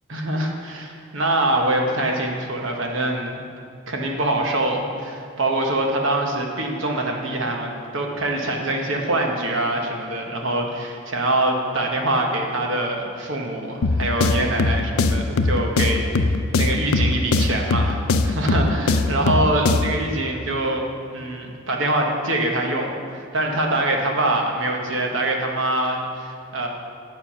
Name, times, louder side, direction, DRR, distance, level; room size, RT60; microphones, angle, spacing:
voice 1, 0.1-3.4 3.9-20.8 21.1-26.7, right 1 dB, 65° right, 1 dB, 1.2 m, -24 dB
sound 1, 13.8-20.0, left 3 dB, 80° left, 0.5 m, -21 dB
8.4 x 7.4 x 5.6 m, 2.2 s
head